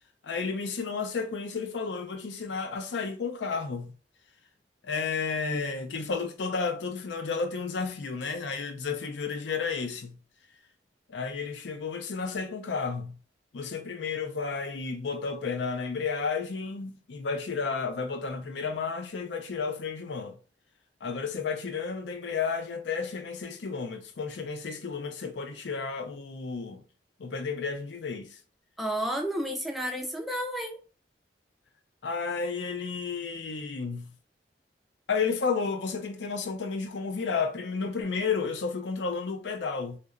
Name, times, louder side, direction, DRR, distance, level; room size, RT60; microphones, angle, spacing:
voice 1, 0.2-3.9 4.8-10.2 11.1-13.2 13.5-20.4 21.0-26.8 27.2-28.4 32.0-34.1 35.1-40.0, left 5 dB, 80° left, 0.4 m, -32 dB
voice 2, 28.8-30.8, equal, ahead, 0.3 m, -31 dB
2.7 x 2.1 x 2.4 m
head